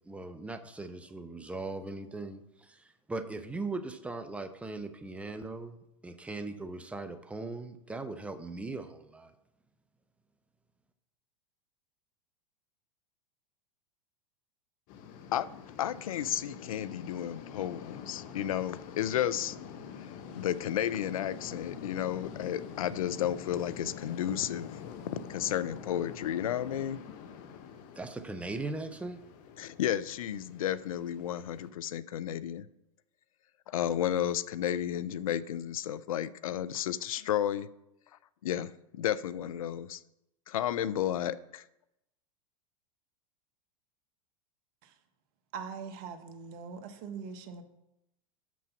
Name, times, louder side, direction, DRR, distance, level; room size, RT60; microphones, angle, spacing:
voice 1, 0.1-9.3 27.9-29.2, right 3 dB, 5° right, 8 dB, 0.7 m, -39 dB
sound 1, 14.9-31.7, left 7 dB, 50° left, 1.0 m, -46 dB
voice 2, 15.8-19.6 20.4-24.8 25.3-27.0 29.6-32.7 33.7-37.7 38.4-40.0 40.5-41.6, left 11 dB, 80° left, 18 dB, 0.4 m, -32 dB
voice 3, 45.5-47.6, right 6 dB, 50° right, 7 dB, 1.2 m, -42 dB
6.8 x 6.2 x 5.8 m, 0.87 s
hypercardioid pair, 100°, 18 cm